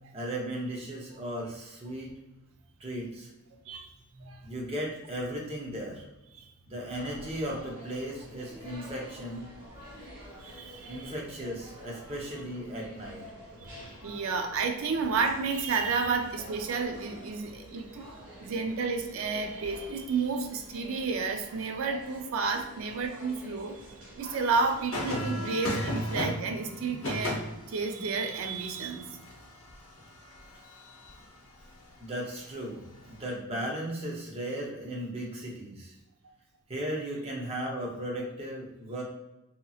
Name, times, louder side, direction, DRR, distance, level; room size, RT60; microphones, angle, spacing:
voice 1, 0.1-2.1 2.8-3.3 4.4-6.0 6.7-9.5 10.9-13.2 32.0-32.8 33.1-35.9 36.7-39.0, right 1 dB, 25° right, -2 dB, 0.6 m, -36 dB
voice 2, 3.7-4.4 10.4-11.1 13.6-13.7 14.0-18.1 18.4-29.1, right 4 dB, 65° right, 5 dB, 0.4 m, -31 dB
sound 1, 6.9-25.1, equal, 85° right, 1.3 m, -48 dB
sound 2, 24.9-31.3 33.0-33.3, left 1 dB, 65° left, 0.6 m, -36 dB
2.8 x 2.7 x 2.3 m, 0.96 s
head